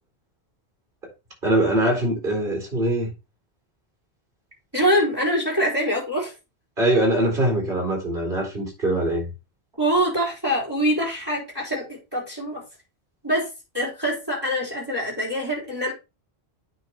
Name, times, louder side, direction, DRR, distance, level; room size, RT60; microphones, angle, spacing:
voice 1, 1.4-3.1 6.8-9.3, right 1 dB, 50° right, 4.4 m, -22 dB
voice 2, 4.7-6.3 9.8-12.6 13.2-13.5 13.7-15.9, equal, 20° right, 4.7 m, -24 dB
9.4 x 4.8 x 4.3 m
omnidirectional pair, 1.1 m